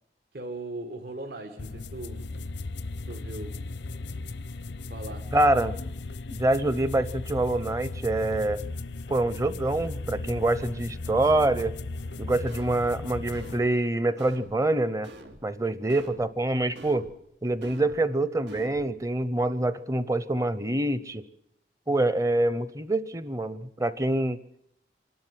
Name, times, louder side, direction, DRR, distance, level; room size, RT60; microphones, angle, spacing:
voice 1, 0.3-2.3 3.1-3.6 4.9-5.4, right 2 dB, 60° right, 1.7 m, -39 dB
sound 1, 1.6-13.6, left 2 dB, 85° left, 0.7 m, -36 dB
voice 2, 5.3-5.7 6.3-8.6 9.1-11.7 12.2-15.1 15.4-17.1 17.4-21.2 21.9-24.4, right 2 dB, 20° right, 0.7 m, -25 dB
sound 2, 12.5-12.9 13.3-13.7 14.2-14.6 15.0-15.5 15.9-16.3 16.8-17.2 17.6-18.0 18.5-18.9, right 2 dB, 90° right, 2.4 m, -46 dB
26.0 x 12.0 x 9.8 m
head